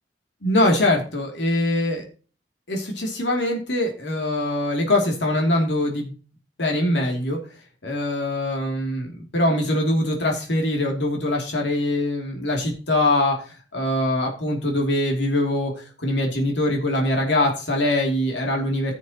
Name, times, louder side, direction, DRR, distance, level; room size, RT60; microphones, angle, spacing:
voice 1, 0.4-2.0 2.7-6.1 6.6-7.4 7.8-18.9, left 1 dB, 75° left, 1 dB, 2.7 m, -23 dB
15.0 x 7.2 x 2.9 m, 0.37 s
head